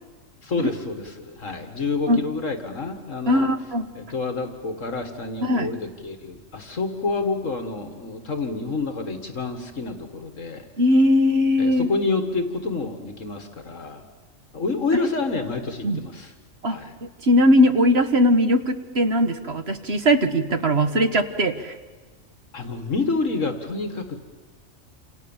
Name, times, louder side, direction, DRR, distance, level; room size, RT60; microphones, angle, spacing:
voice 1, 0.4-3.5 3.9-10.7 11.6-14.0 14.5-16.3 16.7-16.9 22.5-24.2, left 3 dB, 70° left, 7 dB, 2.3 m, -28 dB
voice 2, 3.3-3.9 5.4-5.7 10.8-11.9 15.8-16.0 16.6-21.7, equal, 50° right, 8 dB, 1.6 m, -20 dB
29.0 x 27.0 x 7.3 m, 1.4 s
omnidirectional pair, 1.4 m